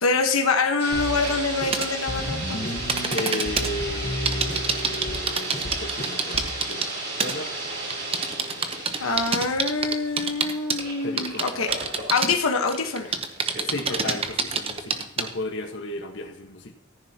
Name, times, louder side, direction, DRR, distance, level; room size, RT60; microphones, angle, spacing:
voice 1, 0.0-2.6 9.0-11.7 12.1-13.2, left 4 dB, 90° left, 4 dB, 1.2 m, -25 dB
sound 1, 0.8-14.9, right 2 dB, 50° right, 3.5 m, -35 dB
sound 2, 0.9-6.6, left 1 dB, 35° left, 1.4 m, -34 dB
sound 3, 1.7-1.9 2.9-3.7 4.2-6.9 7.2-7.5 7.9-10.8 11.2-12.4 12.7-15.3, right 5 dB, 25° right, 0.9 m, -26 dB
voice 2, 3.1-6.9 7.2-7.5 11.0-11.5 13.6-16.7, left 2 dB, 60° left, 3 dB, 1.3 m, -34 dB
14.0 x 10.5 x 2.9 m, 0.69 s
head